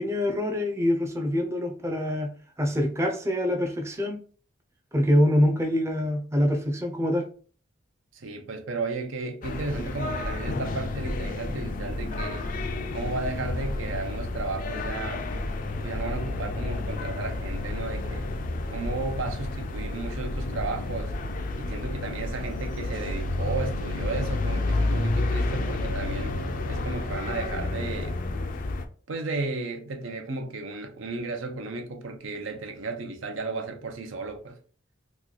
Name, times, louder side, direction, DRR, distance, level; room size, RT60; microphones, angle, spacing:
voice 1, 0.0-2.3 2.6-4.2 4.9-7.3, left 1 dB, 15° right, 0.5 m, -25 dB
voice 2, 8.1-12.5 12.9-15.2 15.8-18.3 18.7-21.1 21.6-26.4 26.7-28.2 29.1-34.6, right 3 dB, 80° right, 0.6 m, -34 dB
sound 1, 9.4-28.9, left 2 dB, 40° left, 0.4 m, -30 dB
Keyboard (musical), 25.8-28.3, right 1 dB, 85° left, 0.9 m, -45 dB
3.0 x 2.3 x 3.8 m
head